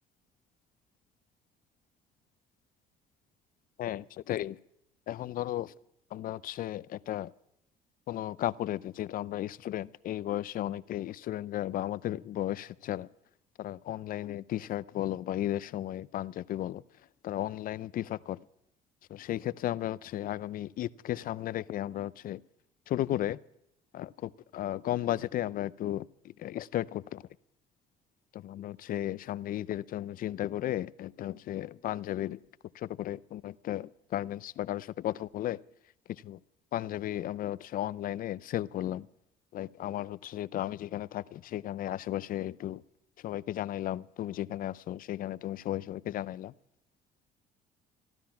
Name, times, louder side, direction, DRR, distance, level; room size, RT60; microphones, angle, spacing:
voice 1, 3.8-4.6 5.1-5.7 6.1-7.3 8.1-13.1 13.6-16.8 17.2-18.4 19.1-22.4 22.9-23.4 23.9-27.2 28.3-32.4 32.7-35.6 36.1-36.4 36.7-39.1 39.5-42.8 43.2-46.5, left 13 dB, 55° left, 0.5 m, -34 dB
15.0 x 12.5 x 5.8 m
cardioid pair, 110°, 17 cm